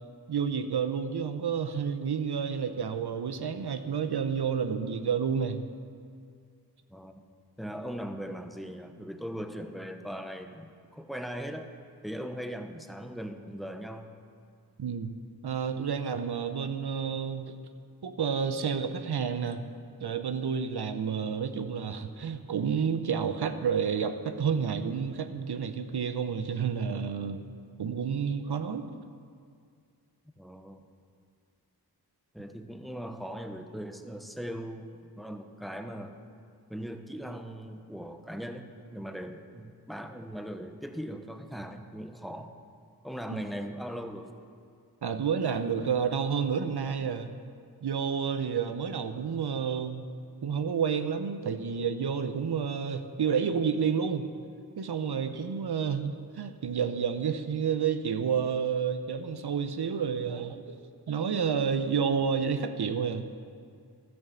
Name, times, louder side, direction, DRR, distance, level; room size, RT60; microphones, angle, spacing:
voice 1, 0.3-5.6 14.8-15.1 15.4-17.5 18.0-19.7 20.0-27.4 27.8-28.9 43.3-43.4 45.0-47.3 47.8-50.1 50.4-54.3 54.8-60.8 61.1-63.3, right 6 dB, 80° right, 9 dB, 0.8 m, -30 dB
voice 2, 7.6-11.7 12.0-14.1 30.4-30.9 32.3-36.2 36.7-42.5 43.0-44.3, equal, ahead, 6 dB, 0.9 m, -39 dB
12.5 x 6.2 x 7.1 m, 2.3 s
cardioid pair, 40°, 39 cm